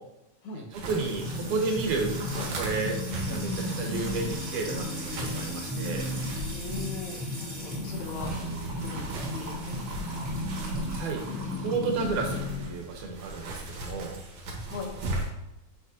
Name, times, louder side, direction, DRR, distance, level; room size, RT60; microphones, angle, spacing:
voice 1, 0.5-2.1 2.5-3.0 3.3-6.0 10.9-14.1, right 4 dB, 90° right, 2 dB, 2.7 m, -32 dB
sound 1, 0.7-15.3, right 1 dB, 70° right, 2.8 m, -38 dB
Music / Water tap faucet / Trickle dribble, 0.9-12.7, left 1 dB, 25° right, 2.4 m, -34 dB
voice 2, 6.5-8.3 8.8-10.2 14.7-14.9, left 4 dB, 75° left, 1 dB, 2.5 m, -40 dB
7.9 x 6.3 x 2.9 m, 0.90 s
omnidirectional pair, 3.4 m